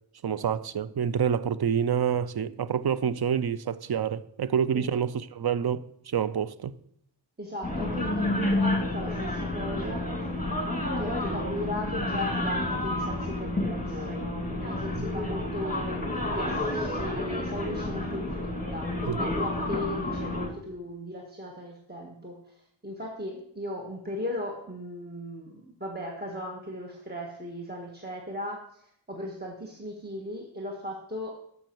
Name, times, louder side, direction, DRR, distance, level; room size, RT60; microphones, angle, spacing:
voice 1, 0.2-6.7 15.0-15.1 19.1-19.2, right 7 dB, 55° right, 0.6 m, -27 dB
voice 2, 7.4-10.1 11.0-16.1 16.3-31.3, left 1 dB, 20° right, 1.5 m, -37 dB
sound 1, 7.6-20.5, left 1 dB, 20° left, 2.3 m, -30 dB
12.5 x 5.7 x 4.6 m
wide cardioid pair, 40°, 46 cm